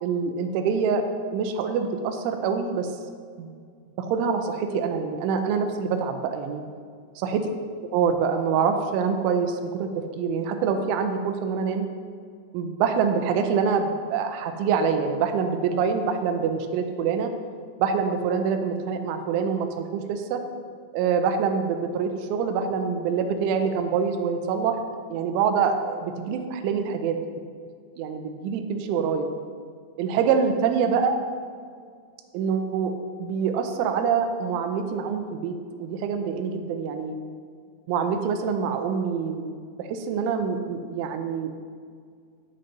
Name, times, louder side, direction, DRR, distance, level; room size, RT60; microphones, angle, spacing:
voice 1, 0.0-1.0 1.3-2.9 3.4-3.5 4.0-6.6 7.2-7.5 7.8-11.9 12.5-17.3 17.8-20.4 20.9-24.8 25.1-27.2 28.0-29.3 30.0-31.2 32.3-32.9 33.2-37.2 37.9-41.6, right 6 dB, 80° right, 5 dB, 3.1 m, -25 dB
17.0 x 6.5 x 2.9 m, 2.1 s
omnidirectional pair, 5.6 m